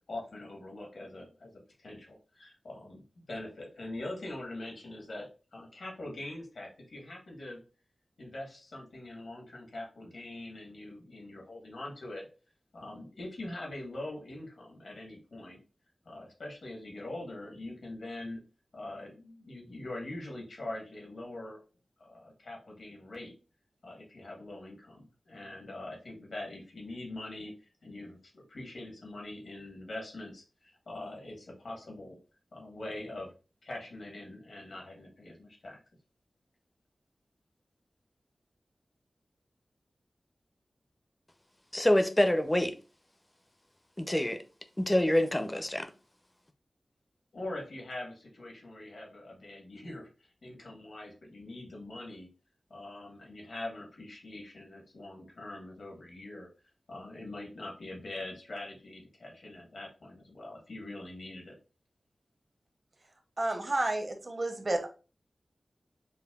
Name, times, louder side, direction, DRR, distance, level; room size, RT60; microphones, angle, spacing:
voice 1, 0.1-1.5 1.8-3.0 3.3-7.6 8.2-12.3 12.7-15.6 16.0-18.4 18.7-21.6 22.0-23.3 23.8-32.2 32.5-33.3 33.6-35.8 47.3-52.3 52.7-56.5 56.9-61.5, left 2 dB, 75° left, 1.3 m, -43 dB
voice 2, 41.7-42.7 44.0-44.4 44.8-45.9, left 1 dB, 15° left, 0.5 m, -26 dB
voice 3, 63.4-64.9, right 2 dB, 45° right, 0.7 m, -31 dB
5.3 x 2.2 x 2.3 m
wide cardioid pair, 95°, 0 cm